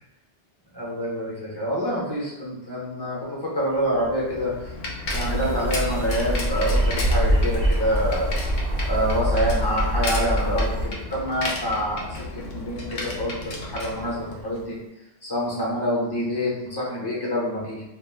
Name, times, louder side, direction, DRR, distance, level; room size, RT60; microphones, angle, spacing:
voice 1, 0.7-4.7 5.1-8.4 8.9-14.8 15.2-17.8, equal, 25° left, -6 dB, 0.5 m, -27 dB
Bicycle, 3.8-14.7, left 2 dB, 60° left, 0.7 m, -34 dB
sound 1, 5.0-10.9, right 1 dB, 60° right, 0.7 m, -24 dB
2.4 x 2.0 x 3.2 m, 0.92 s
omnidirectional pair, 1.3 m